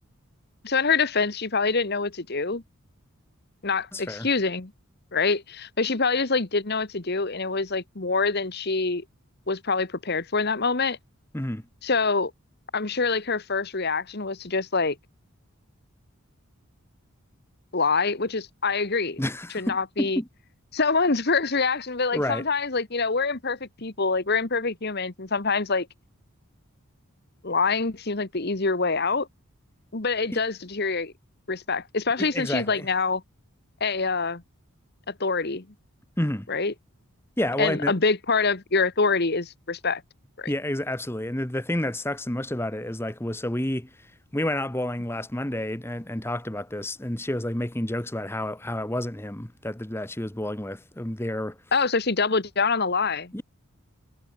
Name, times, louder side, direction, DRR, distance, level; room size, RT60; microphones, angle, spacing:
voice 1, 0.6-2.6 3.6-4.7 5.1-9.0 9.5-11.0 11.8-12.3 12.7-15.0 17.7-19.2 19.5-20.2 20.7-25.9 27.4-29.3 29.9-31.1 31.5-33.2 33.8-34.4 35.1-35.6 36.5-36.7 37.6-40.0 40.4-40.5 51.7-53.3, left 4 dB, 45° left, 1.4 m, -25 dB
voice 2, 3.9-4.3 11.3-11.6 19.2-20.3 22.1-22.5 30.3-30.4 32.2-32.9 36.2-36.5 37.4-37.9 40.5-51.6 53.3-53.4, left 1 dB, 10° left, 1.2 m, -30 dB
head